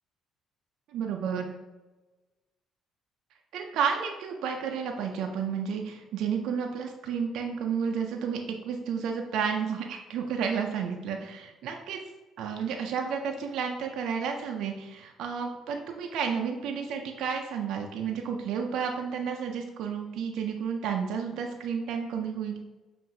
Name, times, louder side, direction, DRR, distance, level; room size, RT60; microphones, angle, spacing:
voice 1, 0.9-1.5 3.5-12.0 12.4-22.6, right 6 dB, 75° right, 3 dB, 0.4 m, -31 dB
5.5 x 2.5 x 2.6 m, 1.1 s
supercardioid pair, 80°, 0 cm